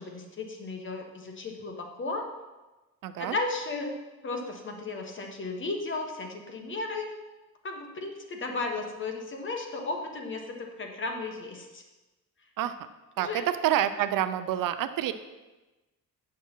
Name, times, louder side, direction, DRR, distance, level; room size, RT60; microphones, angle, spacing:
voice 1, 0.0-2.3 3.2-3.9 4.2-7.1 7.6-11.8 13.2-13.4, left 3 dB, 35° left, 3 dB, 1.2 m, -34 dB
voice 2, 3.0-3.4 12.6-12.8 13.2-15.1, right 11 dB, 75° right, 12 dB, 0.6 m, -27 dB
9.2 x 6.2 x 4.5 m, 1.1 s
cardioid pair, 120°, 34 cm